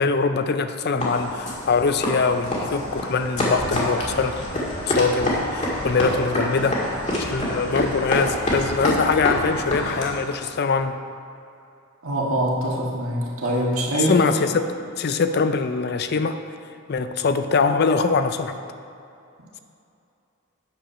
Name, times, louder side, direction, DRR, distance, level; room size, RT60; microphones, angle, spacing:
voice 1, 0.0-4.4 4.9-6.8 7.2-11.0 13.9-14.7 14.9-16.4 16.9-18.5, left 4 dB, 50° left, 9 dB, 0.5 m, -22 dB
sound 1, 1.0-10.3, left 1 dB, 35° left, 1.8 m, -27 dB
voice 2, 12.0-14.2, right 1 dB, 85° right, -3 dB, 1.8 m, -24 dB
8.6 x 5.5 x 6.2 m, 2.6 s
head